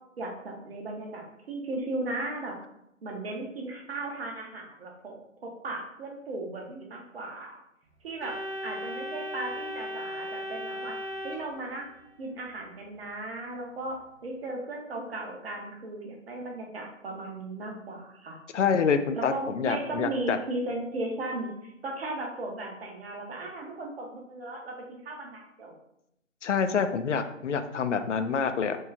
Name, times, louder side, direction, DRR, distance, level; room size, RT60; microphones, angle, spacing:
voice 1, 0.2-2.6 3.0-5.2 5.4-7.6 8.0-11.0 11.2-11.9 12.2-18.4 19.1-25.7, right 2 dB, 50° right, 1 dB, 1.1 m, -36 dB
Organ, 8.2-12.1, equal, 80° right, 1.0 m, -37 dB
voice 2, 18.5-20.4 26.4-28.8, left 6 dB, 65° left, 9 dB, 0.5 m, -27 dB
4.6 x 2.3 x 4.2 m, 0.80 s
figure-of-eight pair, 145°, 39 cm